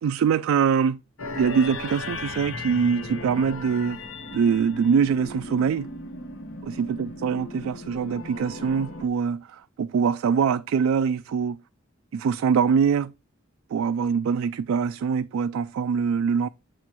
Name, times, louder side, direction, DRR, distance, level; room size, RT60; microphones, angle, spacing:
voice 1, 0.0-1.0 1.4-4.0 4.3-5.9 6.6-11.6 12.1-13.1 13.7-16.5, right 6 dB, 80° right, 0.3 m, -23 dB
sound 1, 1.2-9.1, left 2 dB, 75° left, 1.1 m, -36 dB
7.0 x 4.2 x 4.5 m
head